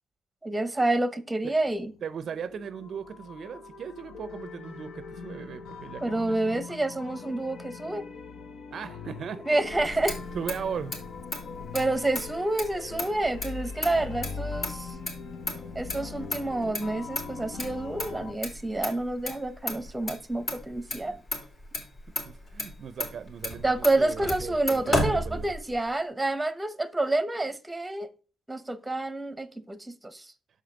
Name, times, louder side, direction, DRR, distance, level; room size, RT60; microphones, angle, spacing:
voice 1, 0.4-1.9 6.0-8.1 9.5-10.2 11.7-14.9 15.7-21.2 23.6-28.1 28.5-30.3, right 2 dB, 10° right, 0.7 m, -28 dB
sound 1, 1.5-18.3, left 4 dB, 75° left, 0.9 m, -41 dB
voice 2, 2.0-6.6 8.7-9.4 10.3-11.0 22.2-25.5, right 7 dB, 55° right, 0.4 m, -38 dB
Motor vehicle (road), 9.7-25.9, left 1 dB, 45° left, 2.7 m, -35 dB
6.4 x 5.0 x 3.8 m
cardioid pair, 90°, 0 cm